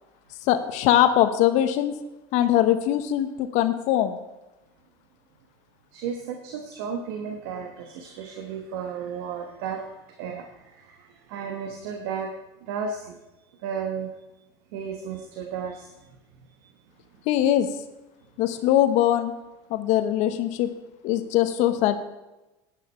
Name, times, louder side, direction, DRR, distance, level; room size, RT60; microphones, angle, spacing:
voice 1, 0.4-2.0 2.3-4.2 17.3-17.7 18.4-19.3 19.7-20.7 21.0-22.0, left 12 dB, 65° left, 10 dB, 1.1 m, -21 dB
voice 2, 5.9-11.0 11.3-12.3 12.7-13.2 13.6-14.1 14.7-15.9, right 6 dB, 75° right, 4 dB, 1.2 m, -33 dB
11.0 x 9.1 x 4.5 m, 1.0 s
hypercardioid pair, 85°, 13 cm